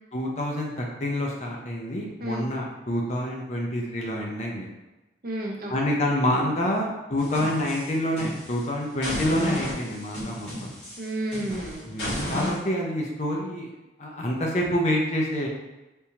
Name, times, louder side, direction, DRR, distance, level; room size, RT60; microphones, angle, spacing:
voice 1, 0.1-4.7 5.7-10.7 11.9-13.7 14.0-15.5, left 1 dB, 40° left, -1 dB, 0.6 m, -27 dB
voice 2, 5.2-6.0 11.0-12.0, right 1 dB, 50° right, -1 dB, 0.6 m, -32 dB
sound 1, 7.2-8.6 9.0-12.6, left 1 dB, 70° left, 1.5 m, -33 dB
3.5 x 2.8 x 2.8 m, 1.0 s
head